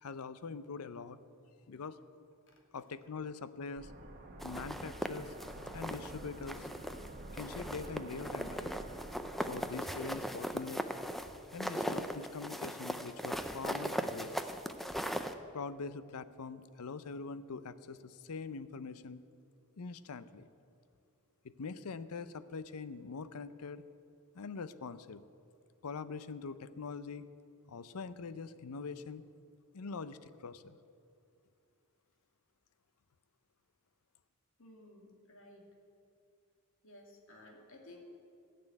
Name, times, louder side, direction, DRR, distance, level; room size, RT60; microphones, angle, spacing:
voice 1, 0.0-1.2 1.7-2.0 2.7-3.9 4.4-5.3 5.7-6.7 7.3-8.7 9.4-10.8 11.5-14.4 15.5-19.2 19.8-20.5 21.4-23.8 24.3-25.2 25.8-27.3 27.7-29.2 29.7-30.8, left 4 dB, 80° left, 14 dB, 0.6 m, -43 dB
sound 1, 3.8-12.5 12.7-12.8, right 2 dB, 45° right, 1.2 m, -50 dB
sound 2, 4.4-6.1 6.5-7.1 7.4-15.3, equal, ahead, 0.5 m, -39 dB
voice 2, 34.6-35.6 36.8-38.0, left 1 dB, 65° left, 1 dB, 2.3 m, -56 dB
14.0 x 6.8 x 8.8 m, 2.5 s
head